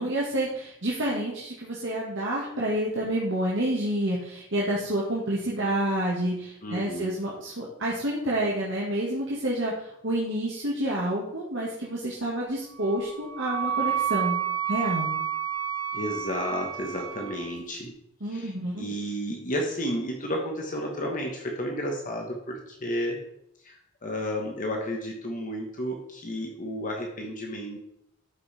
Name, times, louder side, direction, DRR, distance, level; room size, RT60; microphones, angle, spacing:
voice 1, 0.0-14.4 14.7-15.1 18.2-18.8, right 1 dB, 55° right, -5 dB, 1.8 m, -28 dB
voice 2, 6.6-7.1 15.9-17.9 18.3-23.2 23.6-27.8, equal, 35° left, 1 dB, 1.3 m, -32 dB
Wind instrument woodwind instrument, 12.8-17.6, right 9 dB, 85° right, 0.8 m, -30 dB
12.5 x 5.5 x 4.2 m, 0.76 s
head